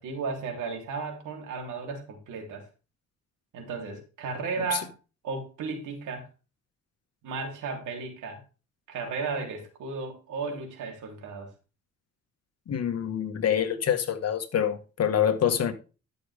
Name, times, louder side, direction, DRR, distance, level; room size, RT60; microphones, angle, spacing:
voice 1, 0.0-2.6 3.5-5.0 5.2-6.3 7.2-8.4 8.9-11.5, right 4 dB, 85° right, 3.7 m, -34 dB
voice 2, 12.7-15.7, left 9 dB, 55° left, 1.8 m, -26 dB
12.5 x 6.8 x 3.6 m
cardioid pair, 90°, 30 cm